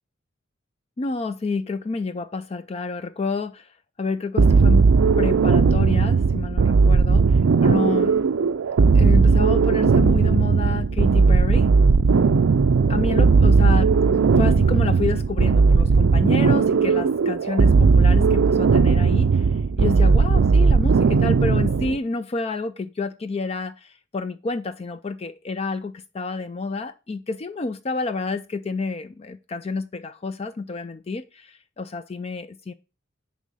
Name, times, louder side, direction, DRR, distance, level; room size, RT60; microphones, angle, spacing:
voice 1, 1.0-4.8 5.2-8.2 8.9-11.7 12.9-32.7, left 3 dB, 30° left, 0.3 m, -29 dB
sound 1, 4.4-22.0, right 4 dB, 85° right, 0.5 m, -17 dB
10.0 x 3.6 x 5.4 m
head